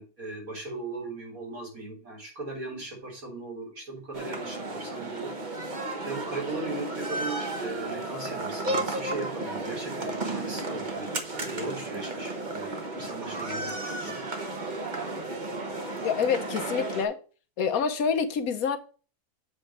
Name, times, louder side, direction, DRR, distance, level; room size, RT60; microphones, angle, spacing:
voice 1, 0.0-5.3 6.1-14.2, right 3 dB, 65° right, 4.2 m, -38 dB
sound 1, 4.1-17.0, right 2 dB, 35° right, 1.2 m, -33 dB
voice 2, 16.0-17.2 17.6-18.8, left 6 dB, 70° left, 1.2 m, -27 dB
7.9 x 4.2 x 5.9 m
omnidirectional pair, 1.6 m